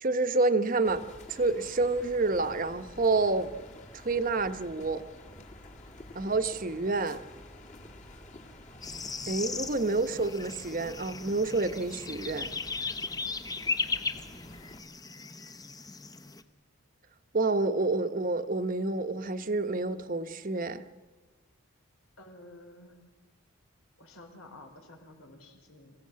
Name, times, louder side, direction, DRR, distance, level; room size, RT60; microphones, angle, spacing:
voice 1, 0.0-1.0 1.3-3.5 3.9-5.0 6.1-7.2 9.3-12.5 17.3-20.8, right 3 dB, 40° right, 1.0 m, -28 dB
sound 1, 0.8-14.8, left 1 dB, 35° left, 1.9 m, -49 dB
sound 2, 8.8-16.4, left 4 dB, 15° left, 0.9 m, -37 dB
voice 2, 22.2-23.0 24.0-25.9, left 1 dB, 85° left, 4.5 m, -51 dB
28.0 x 16.0 x 7.6 m
head